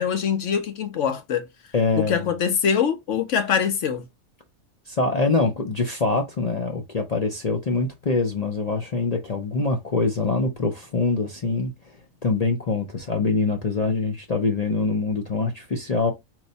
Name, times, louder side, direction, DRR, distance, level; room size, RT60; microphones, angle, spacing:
voice 1, 0.0-1.5 2.1-4.1, left 7 dB, 65° left, 1.0 m, -23 dB
voice 2, 1.7-2.2 4.9-11.7 12.2-16.1, left 3 dB, 45° left, 0.5 m, -24 dB
4.6 x 2.2 x 4.0 m
omnidirectional pair, 1.4 m